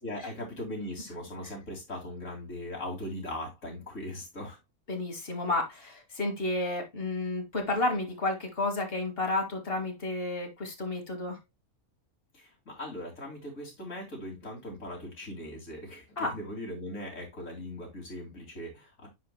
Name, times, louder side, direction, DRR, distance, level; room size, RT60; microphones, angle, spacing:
voice 1, 0.0-4.6 12.3-19.1, left 1 dB, 55° left, 3.0 m, -39 dB
voice 2, 4.9-11.4 16.2-16.3, left 2 dB, 40° left, 1.5 m, -31 dB
9.5 x 4.7 x 2.2 m
omnidirectional pair, 1.6 m